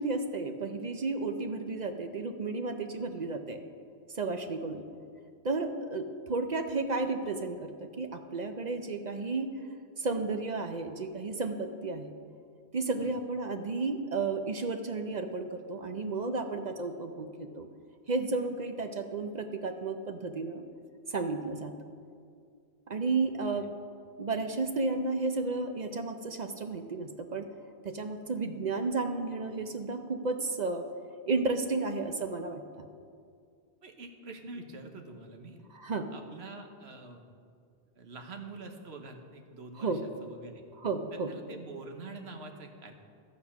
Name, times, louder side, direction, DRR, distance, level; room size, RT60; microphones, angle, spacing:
voice 1, 0.0-3.6 4.1-4.8 5.4-9.5 10.0-12.1 12.7-17.7 18.1-20.6 21.1-21.8 22.9-23.7 24.2-27.5 27.8-30.8 31.3-32.9 35.7-36.1 39.8-40.0 40.8-41.3, right 3 dB, 50° right, 6 dB, 0.7 m, -33 dB
voice 2, 33.8-35.6 36.1-37.2 37.9-40.6 41.1-42.9, right 3 dB, 85° right, 5 dB, 1.4 m, -46 dB
12.0 x 8.6 x 5.8 m, 2.3 s
omnidirectional pair, 1.1 m